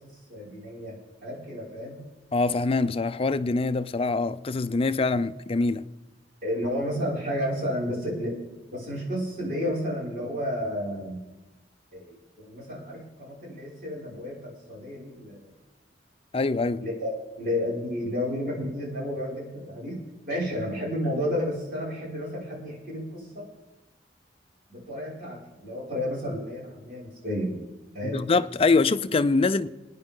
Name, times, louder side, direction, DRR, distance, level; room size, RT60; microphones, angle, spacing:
voice 1, 0.0-2.0 6.4-8.4 8.7-11.2 11.9-12.2 12.4-15.5 16.8-17.1 17.4-20.0 20.3-23.5 24.7-27.6 27.9-28.2, equal, 50° right, 5.9 m, -31 dB
voice 2, 2.3-5.8 16.3-16.8 28.1-29.7, left 3 dB, 35° left, 0.5 m, -24 dB
24.5 x 9.7 x 3.8 m
head